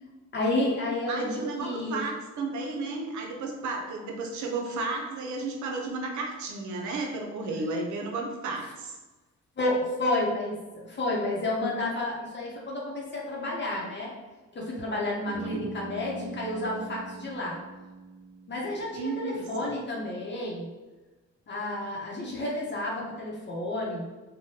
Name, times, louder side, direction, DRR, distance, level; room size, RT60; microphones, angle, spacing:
voice 1, 0.3-2.0 9.6-14.1 14.5-17.6 18.5-20.7 21.5-24.0, left 1 dB, 35° left, -3 dB, 0.8 m, -30 dB
voice 2, 1.1-8.9 15.3-15.7 18.9-19.7, right 3 dB, 75° right, 1 dB, 0.7 m, -33 dB
Bass guitar, 15.3-19.3, right 2 dB, ahead, 0.6 m, -43 dB
3.0 x 2.2 x 2.8 m, 1.2 s
cardioid pair, 90°, 30 cm